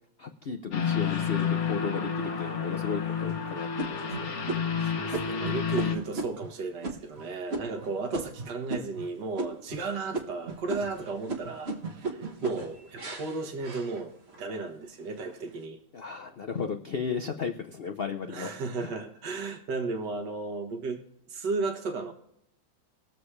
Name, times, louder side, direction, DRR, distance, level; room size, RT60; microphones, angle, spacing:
voice 1, 0.2-4.4 15.9-18.5 18.8-18.9, left 6 dB, 75° left, 0.5 m, -34 dB
sound 1, 0.7-5.9, left 7 dB, 45° left, 1.3 m, -30 dB
sound 2, 0.9-1.8 2.4-2.5 3.0-3.3 3.8-9.1 9.4-9.9 10.1-14.5 14.9-15.5, right 3 dB, 40° right, 1.2 m, -37 dB
voice 2, 5.0-14.1 14.4-15.8 18.3-21.0 21.3-22.1, right 3 dB, 65° right, 2.0 m, -34 dB
21.0 x 7.1 x 3.3 m
omnidirectional pair, 2.0 m